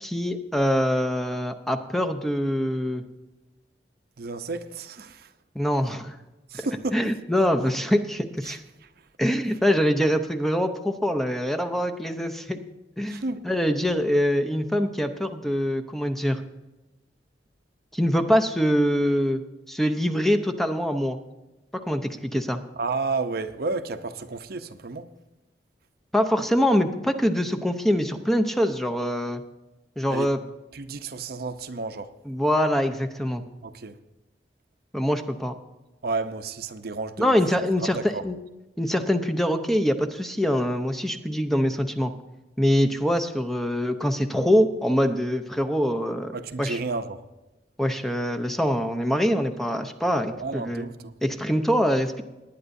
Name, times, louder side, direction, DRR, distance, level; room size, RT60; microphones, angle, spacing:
voice 1, 0.0-3.0 5.6-6.2 6.9-8.6 9.2-12.6 13.0-16.4 17.9-19.4 19.7-21.2 21.7-22.6 26.1-29.4 30.0-30.4 32.3-33.4 34.9-35.5 37.2-38.4 38.8-42.1 42.6-46.3 46.6-46.8 47.8-50.9 51.2-52.2, equal, ahead, 0.6 m, -24 dB
voice 2, 4.2-5.3 6.5-7.0 8.4-8.6 13.1-13.4 22.8-25.1 30.1-30.3 30.7-32.1 33.6-34.0 36.0-37.4 37.8-38.2 46.3-47.2 50.4-51.1, right 3 dB, 60° right, 0.7 m, -31 dB
19.0 x 9.9 x 2.6 m
head